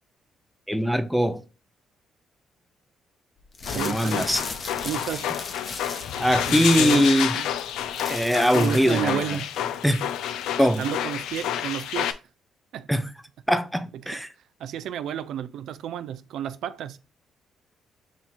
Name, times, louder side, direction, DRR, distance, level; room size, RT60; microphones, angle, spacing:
voice 1, 0.7-1.4 3.7-4.4 6.2-7.3 8.1-9.3 9.8-10.1 10.6-10.8 12.9-13.1 13.5-14.3, equal, ahead, 0.6 m, -22 dB
sound 1, 3.5-9.2, left 3 dB, 40° left, 0.7 m, -37 dB
sound 2, 3.7-12.1, left 10 dB, 85° left, 0.4 m, -29 dB
voice 2, 3.7-4.3 4.8-5.3 6.5-7.5 8.5-9.5 10.6-12.2 12.7-13.0 14.0-14.2 14.6-17.0, right 10 dB, 75° right, 0.3 m, -31 dB
5.9 x 2.8 x 2.4 m
cardioid pair, 90°, 0 cm